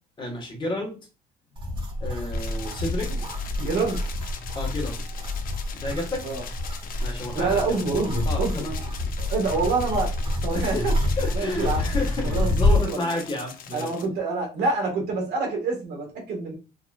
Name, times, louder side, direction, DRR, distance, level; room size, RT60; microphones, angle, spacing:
voice 1, 0.2-1.0 2.0-3.3 4.5-5.1 5.7-6.2 7.0-7.8 8.2-8.7 10.5-10.9 11.2-13.9, left 1 dB, 30° left, 2 dB, 1.4 m, -31 dB
sound 1, 1.6-12.9, left 2 dB, 30° right, 1.4 m, -27 dB
sound 2, 2.3-14.1, left 7 dB, 55° left, 0.7 m, -42 dB
voice 2, 3.6-4.0 6.2-6.4 7.3-8.6 9.2-10.1 10.4-10.9 11.3-11.9 12.2-13.2 13.7-16.5, right 3 dB, 75° right, 1 dB, 1.8 m, -27 dB
4.7 x 2.9 x 2.4 m, 0.31 s
cardioid pair, 110°, 17 cm